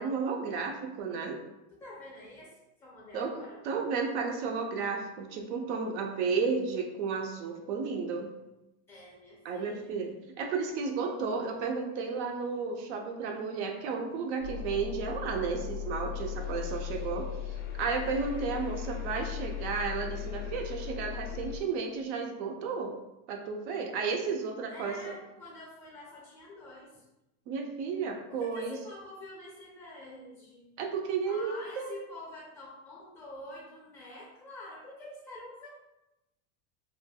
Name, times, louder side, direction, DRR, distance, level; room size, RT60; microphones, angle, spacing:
voice 1, 0.0-1.4 3.1-3.4 3.6-8.3 9.4-22.9 23.3-25.2 27.5-28.8 30.8-31.9, right 5 dB, 50° right, 3 dB, 0.4 m, -33 dB
voice 2, 1.8-3.6 8.9-10.0 16.3-17.0 24.7-27.1 28.3-30.8 31.3-35.7, left 1 dB, 5° left, -5 dB, 0.5 m, -47 dB
sound 1, 14.4-21.6, left 10 dB, 60° left, 0.5 m, -38 dB
3.2 x 2.2 x 2.3 m, 0.93 s
supercardioid pair, 155°, 45 cm